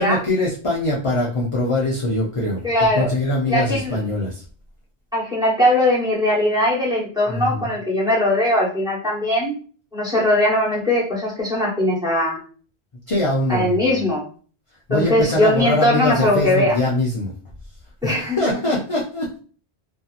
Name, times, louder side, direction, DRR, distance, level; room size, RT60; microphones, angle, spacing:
voice 1, 0.0-4.4 7.3-7.7 13.1-13.8 14.9-17.3 18.0-19.3, left 1 dB, 40° left, -4 dB, 0.5 m, -22 dB
voice 2, 2.6-3.1 3.5-4.0 5.1-9.6 9.9-12.4 13.5-14.2 14.9-16.8 18.0-18.4, left 1 dB, 5° right, -6 dB, 1.0 m, -20 dB
2.7 x 2.6 x 2.4 m, 0.40 s
omnidirectional pair, 1.1 m